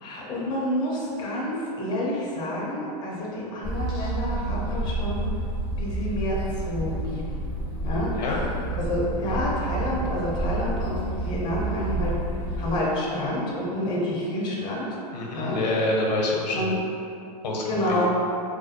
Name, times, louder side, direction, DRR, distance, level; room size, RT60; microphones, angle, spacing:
voice 1, 0.0-5.3 5.8-7.3 7.8-8.1 8.7-12.1 12.6-14.9 15.3-15.6 16.5-16.8 17.7-18.2, left 1 dB, 20° left, -4 dB, 0.4 m, -28 dB
sound 1, 3.6-12.8, right 2 dB, 20° right, 0.9 m, -29 dB
voice 2, 8.1-8.4 15.1-16.8 17.4-18.0, left 2 dB, 90° left, -2 dB, 0.6 m, -26 dB
2.4 x 2.2 x 2.6 m, 2.5 s
hypercardioid pair, 135°, 21 cm